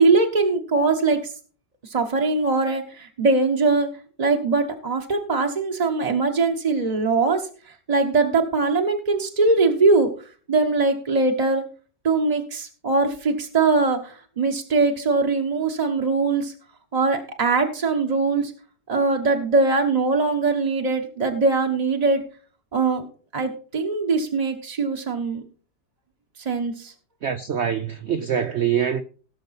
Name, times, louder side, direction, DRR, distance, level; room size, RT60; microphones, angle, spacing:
voice 1, 0.0-1.3 1.8-3.9 4.2-10.1 10.5-11.6 12.0-16.5 16.9-18.5 18.9-22.2 22.7-23.0 23.3-25.4 26.4-26.9, right 3 dB, 30° right, 0.8 m, -21 dB
voice 2, 27.2-29.0, right 8 dB, 90° right, 0.6 m, -24 dB
17.0 x 6.6 x 4.1 m
omnidirectional pair, 1.9 m